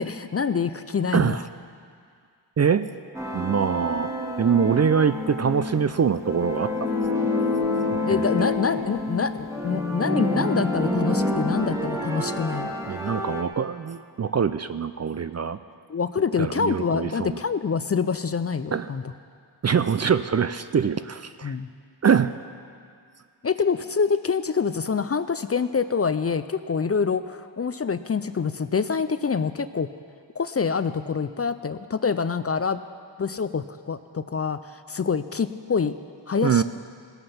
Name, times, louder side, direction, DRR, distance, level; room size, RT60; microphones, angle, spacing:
voice 1, 0.0-1.4 8.0-12.7 15.9-19.0 21.4-21.7 23.4-29.9 30.4-32.8 33.2-35.9 36.3-36.6, left 5 dB, 35° left, 12 dB, 0.4 m, -26 dB
voice 2, 2.6-2.9 3.3-4.1 4.4-6.7 7.9-8.3 12.9-15.6 16.4-17.4 18.7-18.9 19.6-21.5 22.0-22.3 36.4-36.6, right 7 dB, 40° right, 12 dB, 0.4 m, -23 dB
sound 1, 3.1-13.4, left 2 dB, 5° right, 1.5 m, -27 dB
18.0 x 7.9 x 5.7 m, 2.2 s
cardioid pair, 60°, 46 cm